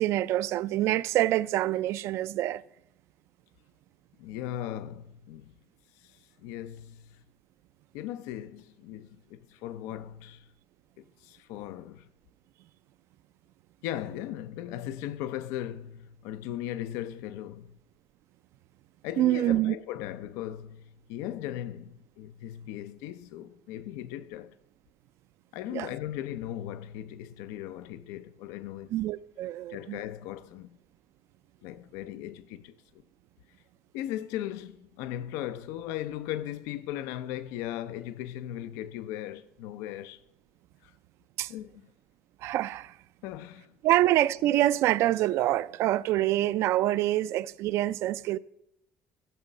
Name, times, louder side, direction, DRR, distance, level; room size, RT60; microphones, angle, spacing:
voice 1, 0.0-2.6 19.2-19.7 25.7-25.9 28.9-30.0 41.4-41.5 42.4-42.9 43.8-48.4, right 14 dB, 65° right, 0.4 m, -26 dB
voice 2, 4.2-5.5 6.0-7.2 7.9-10.5 11.0-12.1 13.8-17.7 19.0-24.5 25.5-28.9 29.7-30.7 31.6-32.8 33.9-40.2 40.8-40.9 41.5-41.8 43.2-43.7, left 12 dB, 85° left, 0.5 m, -38 dB
15.0 x 6.1 x 6.5 m
cardioid pair, 125°, 5 cm